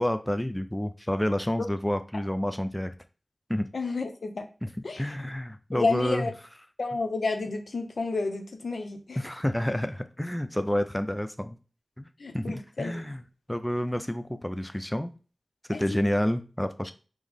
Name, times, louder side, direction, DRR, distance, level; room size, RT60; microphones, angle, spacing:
voice 1, 0.0-2.9 3.5-3.7 4.6-4.7 5.0-6.3 9.2-11.6 12.0-12.1 12.3-13.2 13.5-15.1 15.8-16.9, left 1 dB, 10° left, 9 dB, 0.4 m, -29 dB
voice 2, 3.7-4.5 4.8-5.0 5.7-6.3 6.8-9.2 12.2-13.0 15.7-16.0, left 3 dB, 80° left, 6 dB, 0.7 m, -30 dB
3.7 x 3.1 x 3.5 m, 0.36 s
wide cardioid pair, 55°, 0 cm